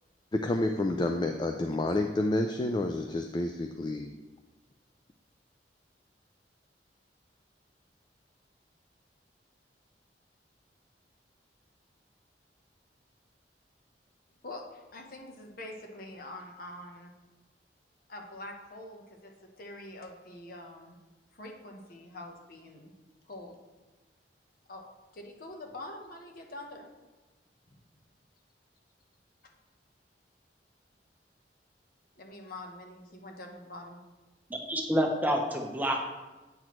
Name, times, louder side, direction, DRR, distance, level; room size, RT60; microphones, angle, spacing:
voice 1, 0.3-4.2, left 2 dB, 25° left, 5 dB, 0.3 m, -29 dB
voice 2, 14.9-17.1 18.1-21.0 21.3-22.9 23.3-23.6 24.7-24.8 25.1-26.9 32.2-34.0, left 1 dB, 55° left, 2 dB, 1.0 m, -45 dB
voice 3, 34.5-36.0, equal, 10° right, 1 dB, 0.7 m, -28 dB
8.8 x 6.0 x 3.1 m, 1.2 s
head